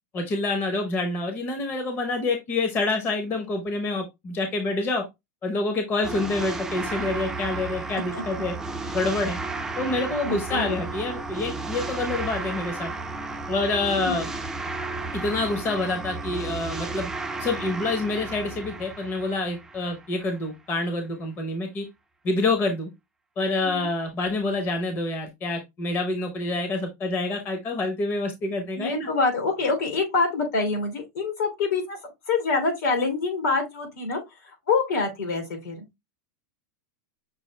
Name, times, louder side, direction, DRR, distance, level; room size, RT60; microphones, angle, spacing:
voice 1, 0.1-5.0 5.4-8.5 8.9-9.4 9.8-12.9 13.5-14.3 15.1-17.1 17.4-21.8 22.2-22.9 23.4-29.1, left 2 dB, 25° left, 0.8 m, -27 dB
sound 1, 6.0-20.4, right 3 dB, 5° right, 0.4 m, -33 dB
voice 2, 10.2-10.7 13.9-14.2 23.6-23.9 28.7-32.0 32.3-35.8, left 4 dB, 80° left, 3.0 m, -26 dB
6.1 x 2.5 x 3.1 m
supercardioid pair, 160°, 9 cm